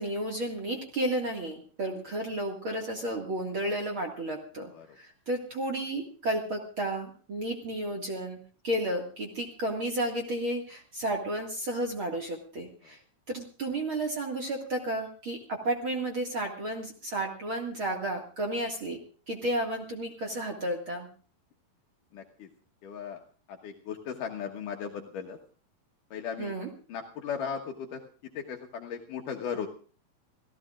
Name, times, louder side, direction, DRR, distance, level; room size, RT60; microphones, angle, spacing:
voice 1, 0.0-4.7 5.0-13.0 13.3-19.0 19.3-21.1 26.4-26.7, right 1 dB, 40° right, 1 dB, 2.4 m, -32 dB
voice 2, 22.1-22.5 22.8-23.2 23.5-25.4 26.1-26.5 26.9-28.0 28.3-29.7, left 7 dB, 70° left, 2 dB, 2.7 m, -36 dB
28.5 x 16.5 x 2.5 m, 0.40 s
omnidirectional pair, 4.2 m